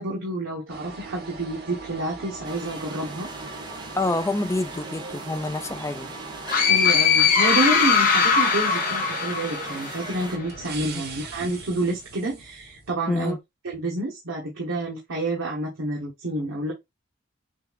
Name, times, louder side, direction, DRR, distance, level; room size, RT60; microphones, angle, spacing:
voice 1, 0.0-3.3 6.5-13.3 13.6-16.7, right 2 dB, 75° right, 1.1 m, -29 dB
sound 1, 0.7-12.9, right 4 dB, 50° right, 1.0 m, -40 dB
sound 2, 2.4-10.4, right 3 dB, 20° right, 0.8 m, -40 dB
voice 2, 3.9-6.1 10.9-11.0 13.1-13.4, left 2 dB, 15° left, 0.4 m, -27 dB
sound 3, 6.5-10.2, left 6 dB, 45° left, 0.9 m, -20 dB
6.6 x 2.4 x 2.3 m
head